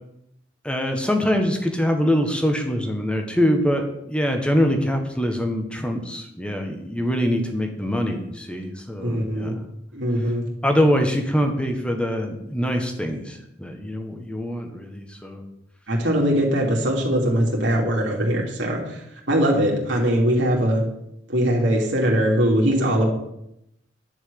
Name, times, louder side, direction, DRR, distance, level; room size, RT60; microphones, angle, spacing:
voice 1, 0.6-9.5 10.6-15.4, equal, 5° left, 4 dB, 1.6 m, -24 dB
voice 2, 9.0-9.6 9.9-10.4 15.9-19.0 19.3-20.8 21.3-23.1, equal, 65° right, -2 dB, 2.9 m, -21 dB
11.0 x 6.3 x 8.8 m, 0.81 s
head